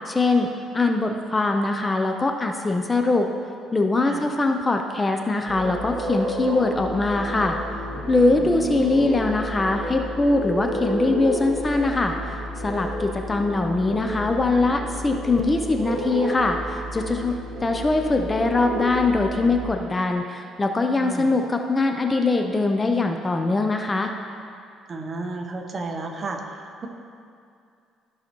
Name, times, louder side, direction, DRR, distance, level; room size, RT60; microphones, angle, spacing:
voice 1, 0.1-0.5 0.7-3.3 3.7-7.6 8.1-17.3 17.6-24.1, left 3 dB, 20° left, 4 dB, 0.5 m, -22 dB
sound 1, 5.5-19.7, equal, 60° right, 1.9 m, -31 dB
voice 2, 21.0-21.3 24.9-26.9, right 3 dB, 35° right, 3 dB, 0.9 m, -33 dB
14.0 x 5.6 x 3.0 m, 2.4 s
cardioid pair, 115°, 0 cm